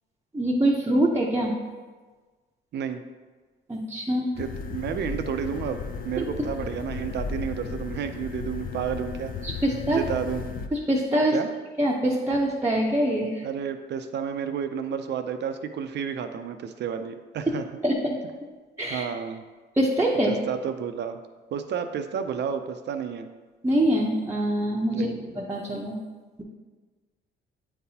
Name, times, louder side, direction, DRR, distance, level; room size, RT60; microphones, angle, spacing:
voice 1, 0.3-1.5 3.7-4.3 6.2-6.3 9.4-10.0 10.7-11.4 11.8-13.5 17.8-18.1 18.8-19.0 19.8-20.3 23.6-25.1 25.4-26.0, right 1 dB, 15° right, -4 dB, 0.7 m, -24 dB
sound 1, 4.3-10.7, left 5 dB, 45° left, 0.5 m, -35 dB
voice 2, 4.4-9.3 9.9-10.5 11.3-11.5 13.4-17.6 18.9-19.4 20.3-21.2 21.5-23.3 24.9-25.2, right 7 dB, 60° right, 8 dB, 0.5 m, -31 dB
8.4 x 4.0 x 2.8 m, 1.4 s
cardioid pair, 90°, 20 cm